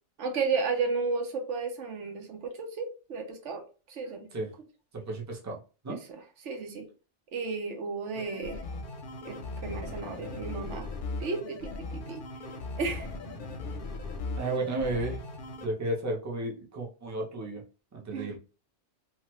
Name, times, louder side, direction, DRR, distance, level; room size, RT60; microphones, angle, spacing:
voice 1, 0.2-4.3 5.9-6.9 7.3-8.6 9.2-10.9 11.2-12.2 12.8-13.1 18.1-18.3, right 4 dB, 80° right, 4 dB, 1.1 m, -33 dB
voice 2, 4.9-5.6 5.8-6.0 14.4-15.2 15.6-17.6 17.9-18.4, right 2 dB, 20° right, -1 dB, 0.6 m, -33 dB
sound 1, 8.2-15.7, left 3 dB, 55° left, 0.7 m, -38 dB
3.0 x 2.3 x 3.0 m, 0.34 s
omnidirectional pair, 1.2 m